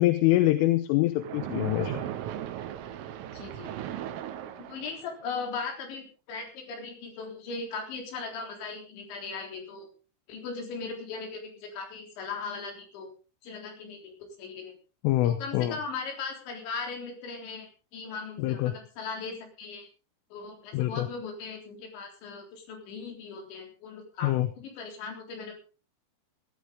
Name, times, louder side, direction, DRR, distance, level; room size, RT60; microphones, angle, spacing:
voice 1, 0.0-2.0 15.0-15.8 18.4-18.8 20.7-21.1 24.2-24.5, left 15 dB, 85° left, 11 dB, 3.4 m, -25 dB
Splash splatter, 1.2-5.2, right 11 dB, 90° right, 3.8 m, -37 dB
voice 2, 3.3-3.8 4.6-9.9 10.3-13.1 13.4-14.8 15.2-19.9 20.3-25.6, left 4 dB, 65° left, 3 dB, 5.9 m, -38 dB
18.5 x 13.0 x 3.8 m, 0.33 s
omnidirectional pair, 5.7 m